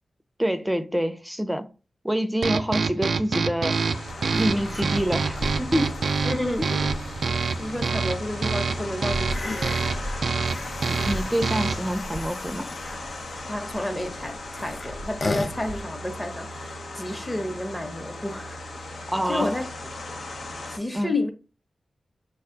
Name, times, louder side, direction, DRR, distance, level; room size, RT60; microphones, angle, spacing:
voice 1, 0.4-1.7 2.0-3.8 4.3-6.0 6.6-6.7 10.9-12.7 19.1-19.6 20.9-21.1, equal, 5° right, 0.6 m, -26 dB
sound 1, 2.4-12.0, right 4 dB, 75° right, 0.3 m, -27 dB
sound 2, 3.7-20.8, left 2 dB, 75° left, 0.9 m, -37 dB
sound 3, 4.1-15.8, left 1 dB, 50° left, 0.6 m, -36 dB
voice 2, 6.2-6.9 7.6-10.1 13.5-18.6 18.9-19.6 20.7-21.3, left 1 dB, 20° left, 0.9 m, -31 dB
5.1 x 2.3 x 3.7 m
cardioid pair, 65°, 0 cm